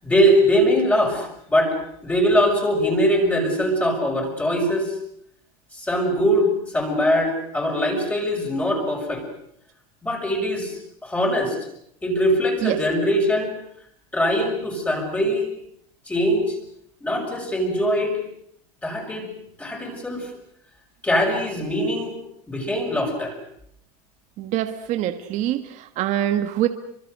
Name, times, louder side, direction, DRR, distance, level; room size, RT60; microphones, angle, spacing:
voice 1, 0.0-1.7 2.0-4.9 5.7-9.2 10.0-11.6 12.0-13.5 14.1-15.5 16.1-16.6 17.0-18.2 18.8-19.3 19.6-20.3 21.0-22.2 22.5-23.3, equal, 5° left, 2 dB, 6.2 m, -22 dB
voice 2, 24.4-26.7, right 12 dB, 40° right, 8 dB, 1.5 m, -24 dB
27.0 x 25.0 x 6.6 m, 0.71 s
supercardioid pair, 155°, 19 cm